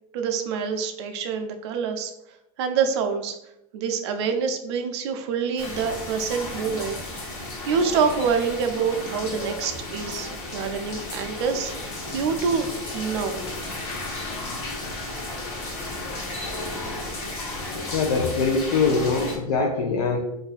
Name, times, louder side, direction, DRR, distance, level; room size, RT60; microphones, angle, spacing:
voice 1, 0.1-2.1 2.6-3.4 3.7-7.0 7.7-11.7 12.1-12.7 12.9-13.4, right 6 dB, 45° right, 6 dB, 0.4 m, -26 dB
sound 1, 5.6-19.4, left 2 dB, 50° left, 1.2 m, -33 dB
voice 2, 17.9-20.2, left 4 dB, 85° left, 0 dB, 0.6 m, -23 dB
2.6 x 2.4 x 4.1 m, 0.84 s
supercardioid pair, 180°, 19 cm